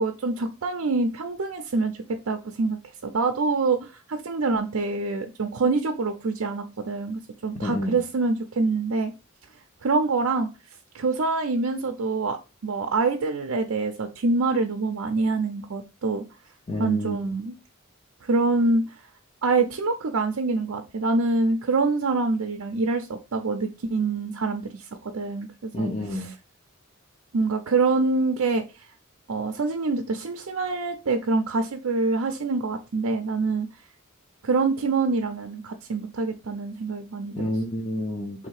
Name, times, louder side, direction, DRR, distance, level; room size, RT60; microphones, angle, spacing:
voice 1, 0.0-1.9 2.3-9.1 9.8-10.5 10.9-12.4 12.6-16.2 16.8-17.5 18.2-19.0 19.4-26.3 27.3-28.6 29.3-33.7 34.4-37.5, right 3 dB, 75° right, 0.5 m, -25 dB
voice 2, 7.6-8.0 16.7-17.3 25.7-26.3 37.3-38.5, left 1 dB, 30° left, 0.6 m, -29 dB
3.5 x 2.8 x 4.6 m
head